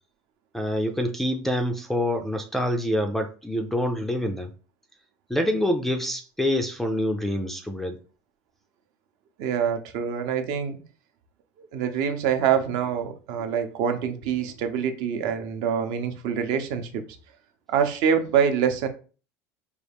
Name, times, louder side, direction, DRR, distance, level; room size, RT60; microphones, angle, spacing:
voice 1, 0.5-4.5 5.3-8.0, left 1 dB, 5° left, 0.3 m, -26 dB
voice 2, 9.4-10.8 11.6-17.0 17.7-18.9, right 8 dB, 60° right, 0.7 m, -25 dB
4.7 x 2.4 x 3.4 m
cardioid pair, 155°, 8 cm